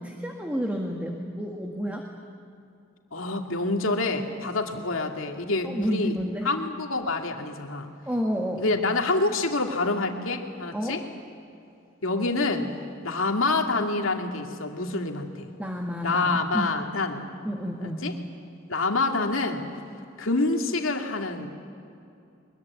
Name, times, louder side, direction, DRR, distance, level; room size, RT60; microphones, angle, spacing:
voice 1, 0.0-2.1 5.6-6.5 8.1-8.7 10.7-11.0 15.6-16.7 17.4-18.0, equal, 5° right, 1 dB, 1.8 m, -30 dB
voice 2, 3.1-6.2 6.4-7.9 8.6-11.0 12.0-12.7 13.0-15.5 16.0-17.2 17.8-18.1 18.7-19.6 20.2-21.5, left 3 dB, 75° left, 3 dB, 2.5 m, -27 dB
24.0 x 22.0 x 9.6 m, 2.6 s
head